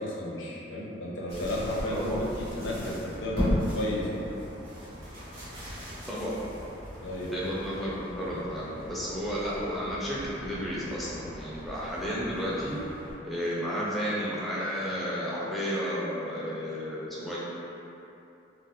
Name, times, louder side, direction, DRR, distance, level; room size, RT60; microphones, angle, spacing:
voice 1, 0.0-4.3 7.0-7.3, left 1 dB, 85° left, -4 dB, 0.5 m, -33 dB
sound 1, 1.3-13.1, equal, 90° right, 1.3 m, -37 dB
voice 2, 1.9-2.2 6.1-6.4 7.3-12.8 13.2-17.4, equal, ahead, -8 dB, 0.4 m, -32 dB
2.5 x 2.3 x 3.5 m, 2.8 s
head